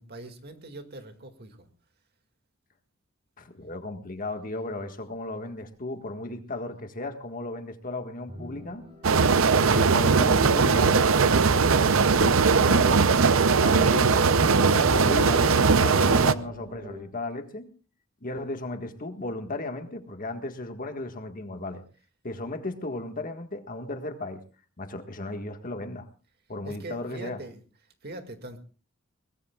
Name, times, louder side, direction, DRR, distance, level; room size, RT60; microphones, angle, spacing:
voice 1, 0.0-1.7 26.7-27.6 28.0-28.6, right 1 dB, 50° right, 6 dB, 2.2 m, -41 dB
voice 2, 3.4-8.8 9.5-11.8 12.2-13.1 13.6-17.7 18.2-21.8 22.2-24.4 24.8-26.1 26.5-27.4, left 2 dB, 40° left, 6 dB, 1.7 m, -35 dB
sound 1, 8.3-17.0, equal, 25° right, 5.9 m, -40 dB
sound 2, 9.0-16.3, right 5 dB, 70° right, 0.7 m, -20 dB
22.5 x 20.5 x 2.4 m, 0.37 s
head